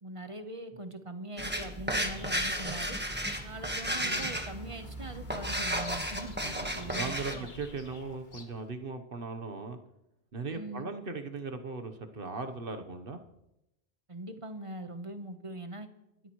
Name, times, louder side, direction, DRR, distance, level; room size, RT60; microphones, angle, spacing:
voice 1, 0.0-3.0 3.4-6.4 6.7-7.5 10.5-10.9 14.1-15.9, right 1 dB, 30° right, 8 dB, 1.1 m, -42 dB
sound 1, 1.4-7.4, equal, 10° right, 1.4 m, -33 dB
Bird vocalization bird call bird song, 1.9-8.7, left 4 dB, 50° left, 1.3 m, -50 dB
voice 2, 4.0-4.4 6.4-9.8 10.3-13.2, right 4 dB, 60° right, 7 dB, 1.3 m, -38 dB
30.0 x 13.0 x 3.1 m, 0.88 s
omnidirectional pair, 1.1 m